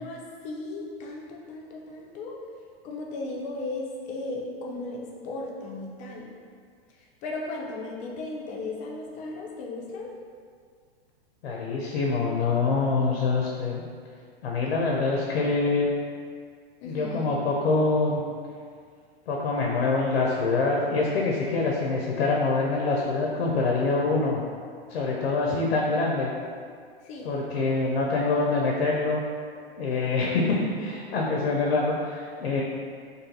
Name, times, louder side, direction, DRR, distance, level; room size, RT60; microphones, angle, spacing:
voice 1, 0.0-2.4 2.8-6.3 7.2-10.1 16.8-17.3 27.0-27.3 29.9-30.2 31.1-31.5, left 2 dB, 25° left, -2 dB, 0.4 m, -36 dB
voice 2, 11.4-13.8 14.4-15.9 16.8-18.2 19.3-24.4 24.9-26.3 27.2-29.2 29.8-32.6, left 3 dB, 85° left, -2 dB, 0.5 m, -25 dB
2.6 x 2.4 x 2.7 m, 2.1 s
hypercardioid pair, 125°, 30 cm